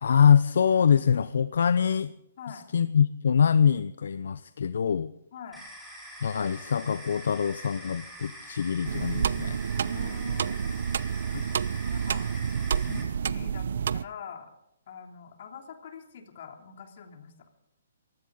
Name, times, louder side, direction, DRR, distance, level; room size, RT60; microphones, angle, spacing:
voice 1, 0.0-2.1 2.7-5.1 6.2-9.6 11.3-11.4, left 7 dB, 70° left, 14 dB, 0.6 m, -24 dB
voice 2, 5.3-5.6 9.8-10.8 11.9-12.3 12.7-13.7 13.9-14.5 14.9-17.5, left 6 dB, 55° left, 3 dB, 3.1 m, -44 dB
sound 1, 5.5-13.0, equal, 5° right, 4.2 m, -45 dB
sound 2, 8.8-14.0, right 7 dB, 65° right, 0.5 m, -29 dB
23.0 x 15.5 x 4.0 m, 0.80 s
hypercardioid pair, 155°, 0 cm